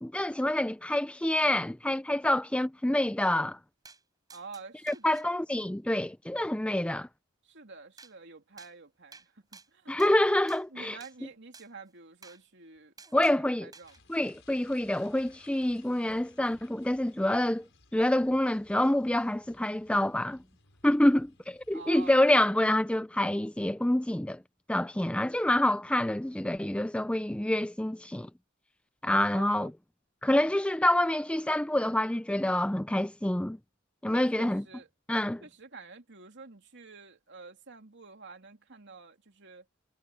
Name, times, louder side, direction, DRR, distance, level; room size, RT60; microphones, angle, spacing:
voice 1, 0.0-3.6 4.9-7.1 9.9-11.0 13.1-13.7 14.1-17.6 17.9-20.4 20.8-24.4 24.7-28.3 29.0-29.7 30.2-33.6 34.0-34.6 35.1-35.4, left 1 dB, 5° left, 0.5 m, -27 dB
sound 1, 3.9-4.0 4.3-5.3 8.0-8.1 8.6-8.7 9.1-9.3 9.5-10.2 10.5-10.6 11.0-11.2 11.5-11.7 12.2-12.4 13.0-13.4 13.7-14.0, right 4 dB, 20° right, 6.4 m, -52 dB
voice 2, 4.3-5.3 7.4-9.9 10.7-13.9 21.7-22.3 29.3-29.7 34.1-34.9 35.4-39.6, right 4 dB, 60° right, 3.1 m, -48 dB
sound 2, 13.8-22.2, left 4 dB, 65° left, 7.5 m, -61 dB
head